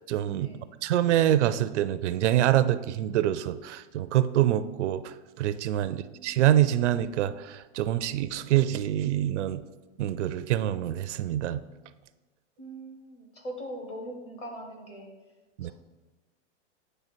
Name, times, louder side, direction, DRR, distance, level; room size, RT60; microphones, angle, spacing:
voice 1, 0.1-0.5 0.8-9.6 10.0-11.6 15.6-15.7, right 12 dB, 75° right, 13 dB, 0.5 m, -25 dB
voice 2, 5.8-6.4 12.6-15.1 15.6-15.7, right 1 dB, 15° left, 1 dB, 0.9 m, -41 dB
9.1 x 3.3 x 4.4 m, 1.2 s
supercardioid pair, 160°, 35 cm